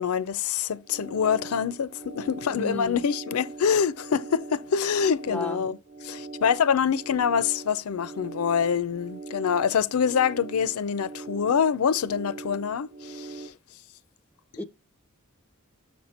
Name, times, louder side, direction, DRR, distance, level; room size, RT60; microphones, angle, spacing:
voice 1, 0.0-13.5, left 7 dB, 80° left, 0.5 m, -25 dB
sound 1, 0.7-13.5, right 3 dB, 45° right, 0.7 m, -42 dB
voice 2, 2.5-3.0 5.3-5.6 14.6-14.7, left 1 dB, 5° left, 0.3 m, -33 dB
7.2 x 4.3 x 4.2 m
head